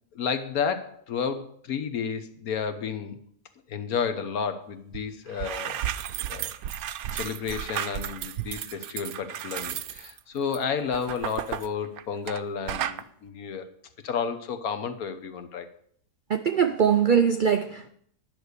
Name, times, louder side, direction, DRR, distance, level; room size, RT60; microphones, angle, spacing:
voice 1, 0.1-3.2 3.7-5.8 6.3-6.5 7.1-13.7 14.0-15.7, left 6 dB, 80° left, 8 dB, 1.4 m, -31 dB
sound 1, 4.9-5.0 5.3-12.4 12.7-13.0, right 11 dB, 85° right, 1.1 m, -33 dB
voice 2, 16.3-17.9, right 7 dB, 65° right, 8 dB, 0.4 m, -22 dB
10.5 x 6.4 x 6.6 m, 0.65 s
omnidirectional pair, 1.5 m